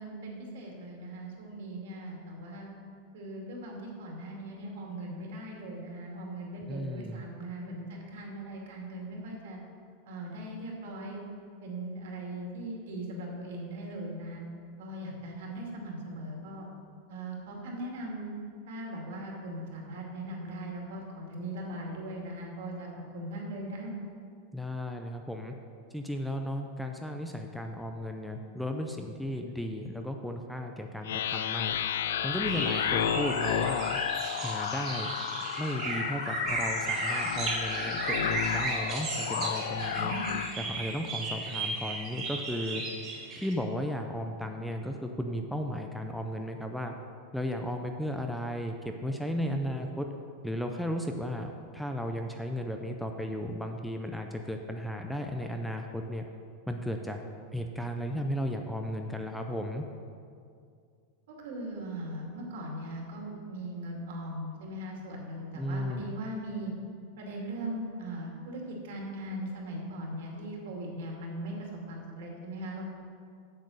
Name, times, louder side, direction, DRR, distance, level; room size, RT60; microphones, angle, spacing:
voice 1, 0.0-2.8 3.1-9.6 10.1-11.2 11.6-14.4 14.8-16.7 17.1-18.3 18.7-22.9 23.1-23.9 39.9-40.2 61.3-66.7 67.2-72.8, right 1 dB, 70° right, -1 dB, 2.4 m, -39 dB
voice 2, 6.7-7.2 24.5-25.5 25.9-31.8 32.2-34.0 34.4-35.1 35.6-40.1 40.6-42.8 43.4-46.9 47.3-50.1 50.4-56.2 56.7-57.2 57.5-59.8 65.5-66.1, equal, ahead, 4 dB, 0.4 m, -35 dB
sound 1, 31.0-40.5, left 9 dB, 85° left, 0.4 m, -32 dB
sound 2, 32.5-43.5, right 2 dB, 30° right, 1.8 m, -35 dB
7.8 x 7.4 x 6.4 m, 2.3 s
supercardioid pair, 165°, 0 cm